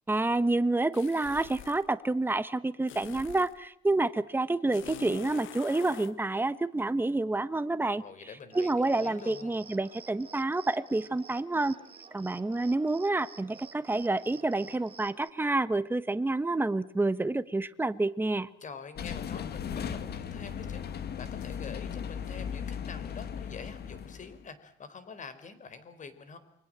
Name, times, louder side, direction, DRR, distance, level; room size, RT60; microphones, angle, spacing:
voice 1, 0.1-8.0 8.5-11.7 12.1-18.5, right 2 dB, 10° right, 13 dB, 1.2 m, -28 dB
sound 1, 0.9-1.9 2.9-3.6 4.7-6.2, left 12 dB, 80° left, 1.6 m, -45 dB
voice 2, 8.0-9.5 18.6-26.4, left 5 dB, 40° left, 12 dB, 4.1 m, -46 dB
Cricket, 8.5-15.3, right 5 dB, 30° right, 1.7 m, -51 dB
sound 2, 19.0-24.4, left 7 dB, 55° left, 2.1 m, -37 dB
29.0 x 24.0 x 7.6 m, 0.70 s
cardioid pair, 140°, 20 cm